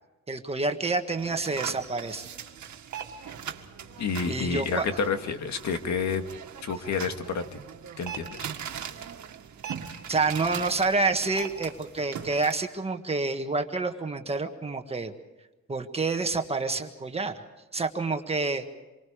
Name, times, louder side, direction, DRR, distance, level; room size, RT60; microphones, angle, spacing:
voice 1, 0.3-2.3 4.3-4.8 10.1-15.1 15.7-17.3 17.7-18.6, right 3 dB, 20° right, 6 dB, 1.5 m, -28 dB
sound 1, 1.2-12.5, right 8 dB, 75° right, 1.9 m, -40 dB
voice 2, 4.0-6.2 6.6-7.6 8.0-8.5, left 5 dB, 70° left, 6 dB, 2.0 m, -29 dB
27.0 x 24.0 x 5.1 m, 1.1 s
wide cardioid pair, 170°, 29 cm